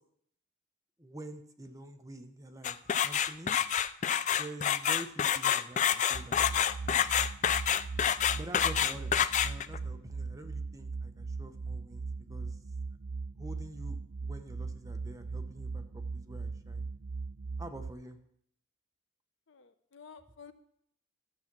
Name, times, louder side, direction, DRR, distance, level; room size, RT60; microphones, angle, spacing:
voice 1, 1.0-2.8 3.0-3.6 4.3-7.1 8.3-9.1 9.4-12.6 13.4-16.9 17.6-18.2, right 1 dB, 15° right, 6 dB, 0.9 m, -47 dB
sound 1, 2.6-9.8, left 9 dB, 40° left, 0.4 m, -28 dB
sound 2, 6.1-17.9, right 4 dB, 75° right, 0.6 m, -39 dB
voice 2, 19.5-20.5, left 6 dB, 65° left, 11 dB, 0.8 m, -52 dB
13.0 x 7.3 x 6.1 m, 0.71 s
head